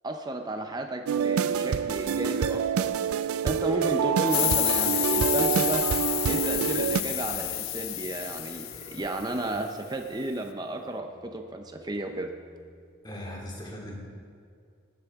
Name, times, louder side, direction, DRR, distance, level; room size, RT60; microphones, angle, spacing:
voice 1, 0.0-2.9 3.4-5.9 6.2-12.3, right 2 dB, 20° right, 4 dB, 0.7 m, -33 dB
sound 1, 1.1-7.0, right 7 dB, 90° right, 0.4 m, -26 dB
sound 2, 1.2-1.9 2.4-13.0, left 2 dB, 35° left, 3.4 m, -49 dB
sound 3, 4.3-9.6, left 17 dB, 75° left, 0.4 m, -29 dB
voice 2, 13.0-14.0, left 1 dB, 20° left, -2 dB, 2.3 m, -39 dB
20.0 x 10.5 x 3.6 m, 2.4 s
head